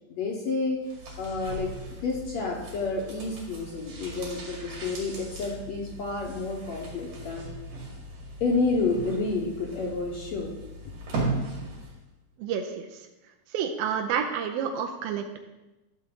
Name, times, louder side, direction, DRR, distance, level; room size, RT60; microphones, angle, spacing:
voice 1, 0.1-0.8 1.2-7.5 8.4-10.5, left 3 dB, 65° left, -1 dB, 1.8 m, -30 dB
sound 1, 0.8-12.0 12.3-12.4, right 2 dB, 65° right, 3.9 m, -38 dB
voice 2, 12.4-12.9 13.5-15.4, right 7 dB, 80° right, 3 dB, 2.4 m, -29 dB
12.5 x 7.1 x 3.8 m, 1.0 s
omnidirectional pair, 4.2 m